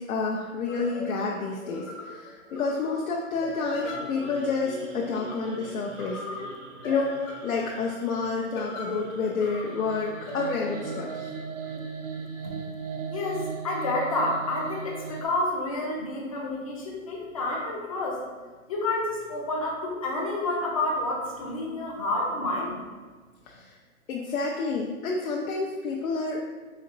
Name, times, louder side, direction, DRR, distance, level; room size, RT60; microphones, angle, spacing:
voice 1, 0.0-6.2 6.8-7.2 7.4-11.2 23.5-23.8 24.1-26.5, left 4 dB, 75° left, -1 dB, 0.6 m, -29 dB
sound 1, 0.7-12.3, left 2 dB, 60° left, 1.0 m, -39 dB
sound 2, 3.3-15.3, right 5 dB, 60° right, 0.5 m, -39 dB
voice 2, 13.1-18.2 18.7-22.8, left 2 dB, 25° left, -3 dB, 0.5 m, -29 dB
4.2 x 2.9 x 2.5 m, 1.4 s
hypercardioid pair, 150°, 42 cm